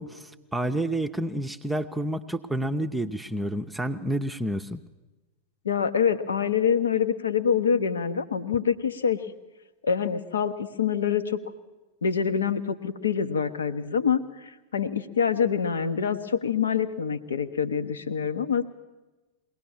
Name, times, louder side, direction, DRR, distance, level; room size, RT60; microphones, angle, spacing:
voice 1, 0.0-4.8, right 1 dB, 5° right, 5 dB, 0.7 m, -29 dB
voice 2, 5.6-9.2 9.8-11.4 12.0-18.6, left 7 dB, 70° left, 12 dB, 1.0 m, -26 dB
22.0 x 17.5 x 7.2 m, 1.2 s
figure-of-eight pair, 90°, 0 cm